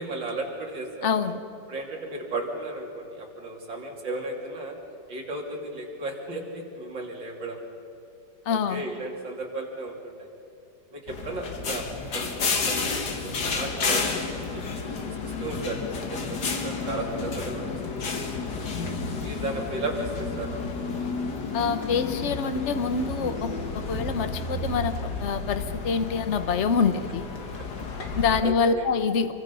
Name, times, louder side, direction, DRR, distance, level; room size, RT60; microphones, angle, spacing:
voice 1, 0.0-1.1 1.7-4.8 5.1-7.6 8.5-10.3 10.9-12.9 13.2-14.0 14.3-17.8 18.0-18.3 19.2-20.6 27.8-28.9, right 2 dB, 70° right, -1 dB, 3.9 m, -35 dB
voice 2, 1.0-1.4 8.5-8.8 21.5-27.3 28.1-29.3, left 5 dB, 45° left, 9 dB, 1.2 m, -26 dB
sound 1, 11.1-28.4, left 4 dB, 60° left, 2.3 m, -31 dB
28.0 x 24.0 x 5.6 m, 2.8 s
omnidirectional pair, 2.1 m